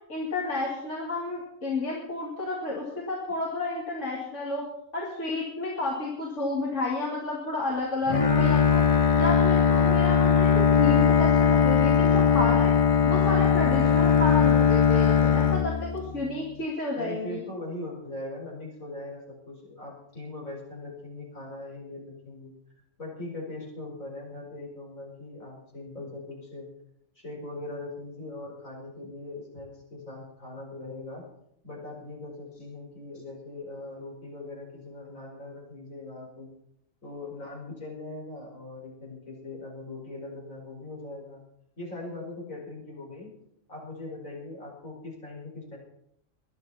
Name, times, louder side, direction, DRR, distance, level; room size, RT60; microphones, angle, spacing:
voice 1, 0.1-4.6 4.9-8.8 9.2-12.7 13.1-17.4, left 2 dB, 65° left, -4 dB, 2.8 m, -31 dB
Bowed string instrument, 8.1-16.3, left 6 dB, 35° left, 0.6 m, -20 dB
voice 2, 16.9-22.5 23.0-26.7 27.2-31.2 31.6-36.5 37.0-41.4 41.8-43.3 43.7-45.8, left 2 dB, 80° left, -3 dB, 5.5 m, -40 dB
20.5 x 12.0 x 4.3 m, 0.76 s
omnidirectional pair, 1.4 m